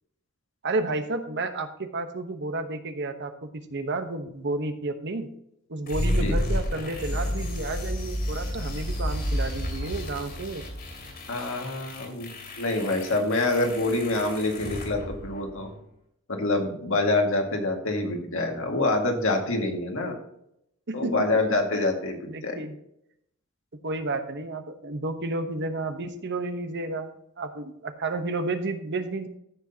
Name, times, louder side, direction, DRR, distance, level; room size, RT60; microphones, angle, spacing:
voice 1, 0.6-5.3 5.7-10.6 20.9-21.2 21.7-21.9 22.3-22.8 23.8-29.3, right 2 dB, 55° right, 8 dB, 1.1 m, -31 dB
sound 1, 5.9-15.8, equal, 45° left, 2.7 m, -31 dB
voice 2, 11.3-12.3 12.6-15.7 16.3-20.2 20.9-22.2 22.4-22.6, left 2 dB, 70° left, 2 dB, 2.0 m, -26 dB
14.5 x 6.3 x 2.8 m, 0.75 s
head